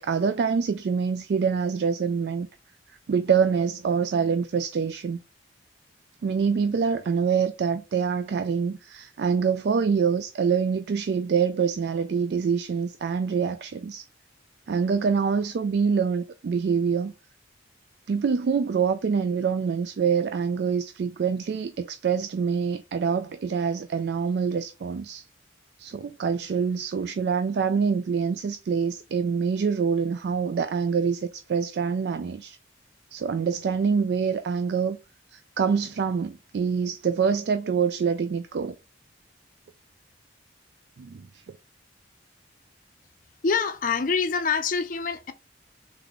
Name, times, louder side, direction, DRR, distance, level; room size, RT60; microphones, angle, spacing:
voice 1, 0.0-2.5 3.1-5.2 6.2-14.1 14.7-17.1 18.1-25.2 25.8-32.6 33.1-35.0 35.3-38.7 41.0-41.3, right 6 dB, 60° right, 0.3 m, -25 dB
voice 2, 43.4-45.3, left 5 dB, 45° left, 0.5 m, -25 dB
3.6 x 3.4 x 3.6 m
head